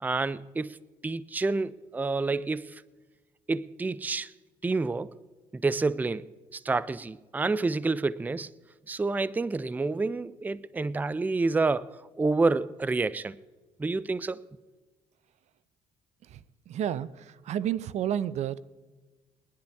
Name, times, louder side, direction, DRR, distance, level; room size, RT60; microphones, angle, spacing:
voice 1, 0.0-0.8 1.0-2.8 3.5-4.3 4.6-5.1 5.5-6.3 6.5-8.5 8.9-13.4 13.8-14.4, right 3 dB, 15° right, 0.4 m, -28 dB
voice 2, 16.7-18.6, right 10 dB, 65° right, 0.5 m, -31 dB
21.5 x 10.5 x 3.4 m
cardioid pair, 85°, 13 cm